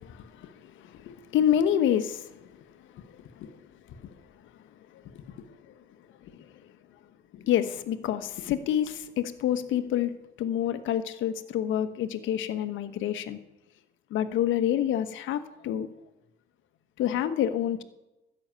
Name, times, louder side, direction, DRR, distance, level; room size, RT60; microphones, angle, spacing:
voice 1, 0.0-2.5 2.9-3.6 3.9-4.1 4.9-5.7 6.3-6.5 7.3-13.4 14.1-15.9 17.0-17.8, left 10 dB, 65° left, 11 dB, 1.2 m, -28 dB
13.0 x 6.5 x 9.1 m, 1.0 s
cardioid pair, 95°, 21 cm